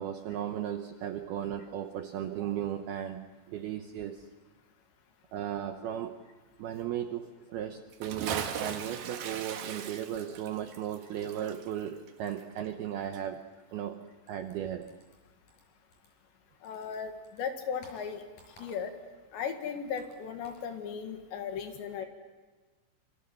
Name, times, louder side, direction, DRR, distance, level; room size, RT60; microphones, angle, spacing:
voice 1, 0.0-4.3 5.3-6.2 6.6-13.4 13.7-14.0 14.3-14.9, right 10 dB, 75° right, 6 dB, 2.3 m, -36 dB
Bathtub (filling or washing) / Splash splatter, 7.9-12.9 13.1-13.2, right 8 dB, 60° right, 2.9 m, -39 dB
sound 1, 14.2-16.4 16.6-19.1 19.4-20.7, left 1 dB, 40° left, 7.0 m, -57 dB
voice 2, 16.6-18.2 18.6-18.9 19.3-22.1, left 7 dB, 70° left, 6 dB, 3.9 m, -36 dB
26.5 x 25.5 x 7.6 m, 1.3 s
omnidirectional pair, 5.6 m